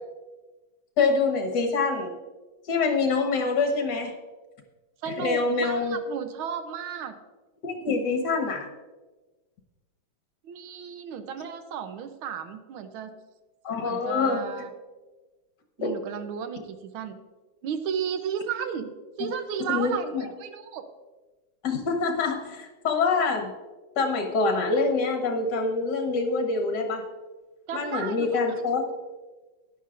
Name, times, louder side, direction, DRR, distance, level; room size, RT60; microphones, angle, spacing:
voice 1, 1.0-2.1 2.7-4.1 5.2-6.0 7.6-8.7 13.6-14.4 15.8-15.9 19.7-20.2 21.6-23.5 24.0-27.0 27.7-28.8, left 4 dB, 60° left, 3 dB, 1.8 m, -25 dB
voice 2, 5.0-7.2 10.4-13.2 13.8-14.7 15.8-17.2 17.6-20.0 20.4-20.8 27.7-28.6, right 7 dB, 85° right, 8 dB, 1.6 m, -34 dB
13.0 x 9.9 x 2.5 m, 1.2 s
omnidirectional pair, 2.2 m